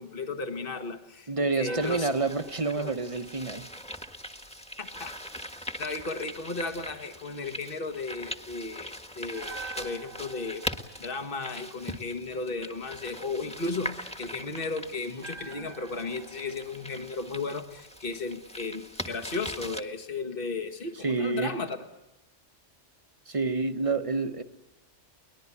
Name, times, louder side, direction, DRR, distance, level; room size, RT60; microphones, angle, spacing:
voice 1, 0.0-2.1 2.7-2.9 4.8-5.1 5.8-10.6 11.0-21.8, left 3 dB, 50° left, 7 dB, 1.9 m, -35 dB
voice 2, 1.3-3.7 21.0-21.5 23.3-24.4, right 3 dB, 30° right, 8 dB, 1.2 m, -28 dB
sound 1, 1.6-4.8 9.2-12.4 15.1-18.3 18.6-18.7, right 5 dB, 50° right, 1.3 m, -48 dB
sound 2, 1.8-19.8, equal, 5° left, 1.5 m, -41 dB
23.0 x 20.0 x 9.8 m, 0.99 s
omnidirectional pair, 1.2 m